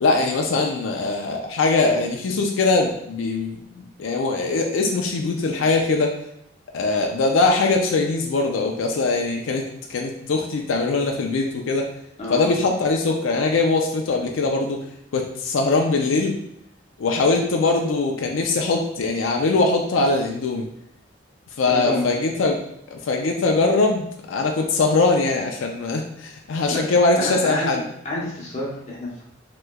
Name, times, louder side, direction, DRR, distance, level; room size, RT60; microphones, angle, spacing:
voice 1, 0.0-6.1 6.7-11.9 12.3-14.8 15.1-16.4 17.0-20.7 21.6-22.6 22.9-27.8, left 3 dB, 90° left, 2 dB, 0.4 m, -21 dB
voice 2, 21.6-22.0 26.7-26.8 27.2-29.2, left 1 dB, 35° left, -4 dB, 0.9 m, -29 dB
3.3 x 2.9 x 2.2 m, 0.75 s
head